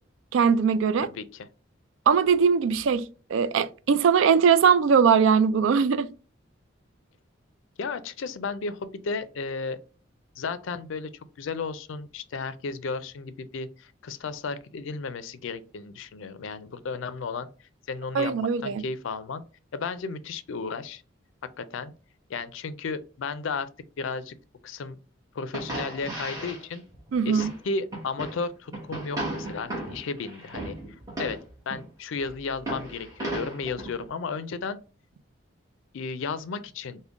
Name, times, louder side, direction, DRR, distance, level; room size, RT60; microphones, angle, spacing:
voice 1, 0.3-1.1 2.1-6.1 18.1-18.8 27.1-27.5, right 6 dB, 75° right, 0.3 m, -21 dB
voice 2, 1.0-1.5 7.8-9.8 10.4-11.1 11.4-17.5 17.9-19.4 19.7-21.0 21.6-21.9 22.3-23.7 24.0-24.4 24.6-25.0 25.3-26.8 27.2-30.8 31.2-31.4 31.7-34.8 35.9-37.0, left 4 dB, 75° left, 0.4 m, -34 dB
sound 1, 25.5-27.6 27.9-28.4 28.7-31.8 32.2-34.0, right 1 dB, 15° right, 1.2 m, -35 dB
3.6 x 2.1 x 3.5 m
head